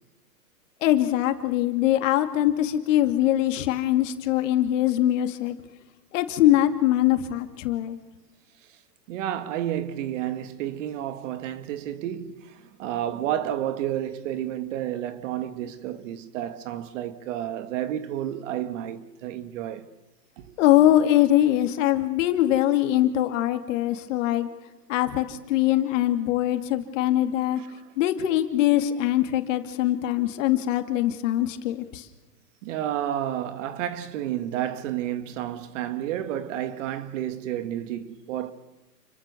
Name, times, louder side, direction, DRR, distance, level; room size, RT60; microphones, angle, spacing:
voice 1, 0.8-5.5 6.1-8.0 20.6-24.5 24.9-27.6 28.0-32.0, left 13 dB, 50° left, 2.7 m, -22 dB
voice 2, 9.1-19.9 20.4-20.5 27.6-27.7 32.6-38.5, right 11 dB, 50° right, 2.0 m, -31 dB
29.5 x 23.5 x 7.0 m
hypercardioid pair, 120°, 48 cm